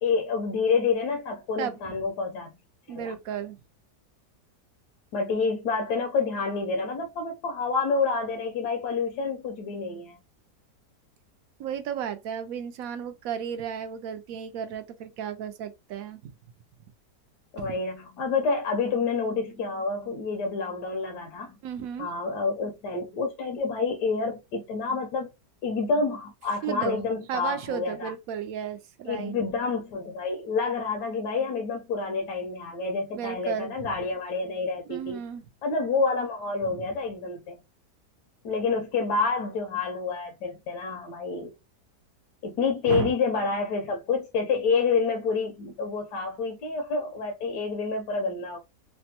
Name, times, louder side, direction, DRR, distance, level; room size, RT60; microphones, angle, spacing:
voice 1, 0.0-2.5 2.9-3.2 5.1-10.2 17.5-21.6 22.0-25.3 25.6-28.1 29.0-35.2 35.6-37.6 38.4-41.5 42.4-48.6, left 4 dB, 80° left, 1.2 m, -28 dB
voice 2, 2.9-3.6 11.6-16.3 17.6-17.7 21.6-22.1 26.6-27.0 27.3-29.3 33.1-33.8 34.9-35.5 36.6-36.9 42.9-43.1, right 8 dB, 70° right, 0.9 m, -34 dB
3.3 x 2.1 x 2.8 m
omnidirectional pair, 1.7 m